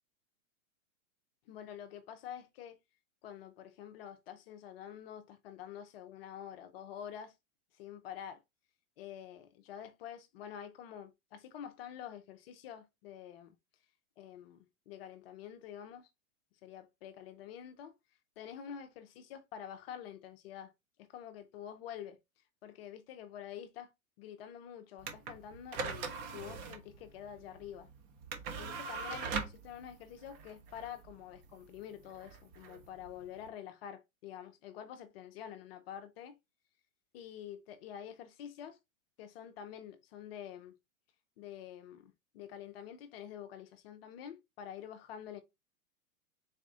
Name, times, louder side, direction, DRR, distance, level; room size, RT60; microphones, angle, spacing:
voice 1, 1.5-2.8 3.2-7.3 7.7-8.4 9.0-13.6 14.2-16.1 16.6-17.9 18.4-20.7 21.0-23.9 24.2-27.9 28.6-36.4 37.1-38.8 39.2-40.8 41.4-45.4, left 9 dB, 45° left, 0.6 m, -47 dB
sound 1, 25.0-33.5, right 5 dB, 35° right, 0.8 m, -42 dB
4.1 x 2.5 x 3.6 m
hypercardioid pair, 120°, 42 cm